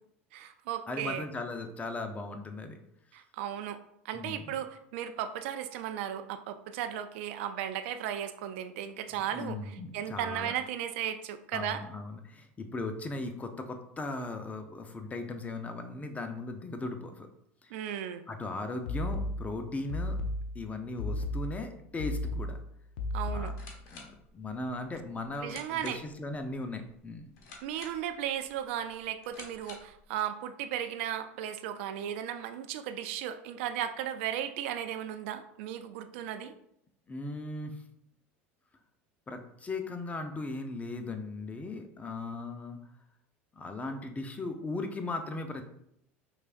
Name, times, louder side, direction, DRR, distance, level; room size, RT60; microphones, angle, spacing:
voice 1, 0.3-1.2 3.1-3.8 4.0-11.8 17.7-18.2 23.1-23.5 25.4-26.0 27.6-36.5, right 10 dB, 70° right, 8 dB, 0.4 m, -35 dB
voice 2, 0.9-2.8 4.1-4.6 9.1-10.5 11.5-17.3 17.6-17.7 18.3-20.2 20.5-22.6 23.3-23.5 23.9-27.3 37.1-37.8 39.3-42.8 43.6-45.6, left 2 dB, 20° left, 6 dB, 0.7 m, -38 dB
sound 1, 18.9-23.8, left 1 dB, 80° left, 0.6 m, -35 dB
sound 2, 23.4-30.1, left 3 dB, 65° left, 1.1 m, -52 dB
4.9 x 3.3 x 2.5 m, 0.74 s
hypercardioid pair, 85°, 7 cm